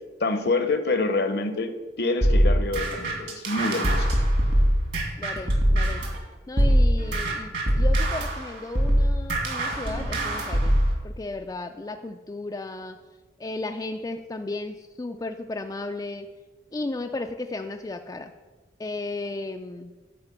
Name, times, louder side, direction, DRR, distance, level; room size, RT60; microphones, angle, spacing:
voice 1, 0.2-1.7 2.0-4.1, left 3 dB, 60° left, 9 dB, 0.8 m, -26 dB
sound 1, 2.2-6.2 6.6-10.9, equal, 65° right, 2.4 m, -22 dB
voice 2, 4.9-6.1 6.5-10.7 11.0-13.0 13.4-16.3 16.7-18.3 18.8-19.9, left 2 dB, 20° left, 5 dB, 0.3 m, -34 dB
10.5 x 4.4 x 7.2 m, 1.3 s
head